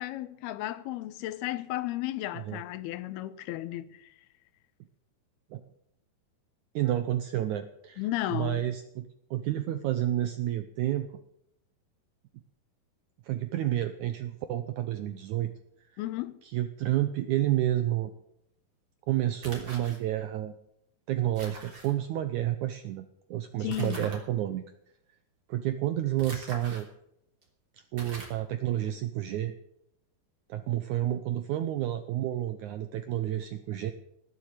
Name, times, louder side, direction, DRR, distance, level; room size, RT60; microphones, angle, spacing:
voice 1, 0.0-4.2 8.0-8.6 16.0-16.4 23.6-24.1, left 15 dB, 90° left, 2.8 m, -34 dB
voice 2, 6.8-8.0 8.3-11.1 13.2-15.5 16.4-18.1 19.1-20.6 21.1-24.6 25.5-26.9 27.7-29.5 30.5-33.9, right 13 dB, 80° right, 1.7 m, -30 dB
sound 1, 19.4-20.0 21.4-21.9 23.7-24.2 26.2-26.8 27.4-27.5 28.0-28.4, right 2 dB, 30° right, 3.6 m, -43 dB
19.0 x 7.7 x 8.2 m
omnidirectional pair, 4.4 m